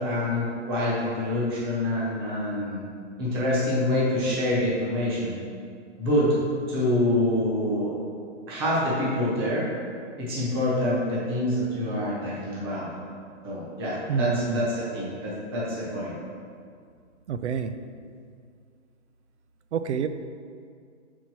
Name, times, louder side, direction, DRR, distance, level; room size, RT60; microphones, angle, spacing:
voice 1, 0.0-2.8 3.2-5.3 6.0-6.4 6.7-7.9 8.5-9.7 10.2-12.9 13.4-16.1, left 1 dB, 20° right, -6 dB, 1.0 m, -26 dB
voice 2, 14.1-14.6 17.3-17.7 19.7-20.1, right 7 dB, 70° right, 10 dB, 0.5 m, -27 dB
5.6 x 4.6 x 4.4 m, 2.2 s
hypercardioid pair, 175°, 36 cm